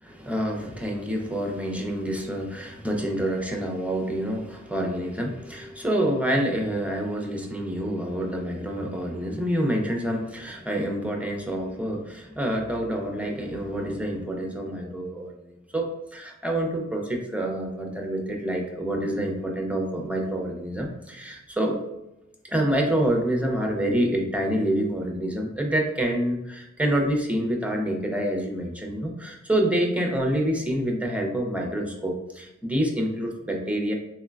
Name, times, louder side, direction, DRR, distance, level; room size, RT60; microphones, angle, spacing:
voice 1, 0.0-21.8 22.4-33.9, right 1 dB, 5° right, 1 dB, 0.7 m, -27 dB
3.6 x 3.1 x 2.4 m, 0.89 s
wide cardioid pair, 60°, 30 cm